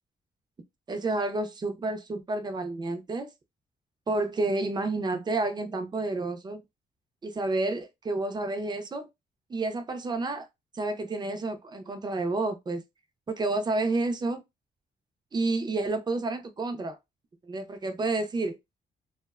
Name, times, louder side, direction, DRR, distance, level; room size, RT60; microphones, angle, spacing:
voice 1, 0.9-3.3 4.1-6.6 7.2-9.1 9.5-10.5 10.7-12.8 13.3-14.4 15.3-17.0 17.5-18.6, right 2 dB, 25° right, 0.5 m, -30 dB
2.4 x 2.1 x 2.3 m
cardioid pair, 85°, 16 cm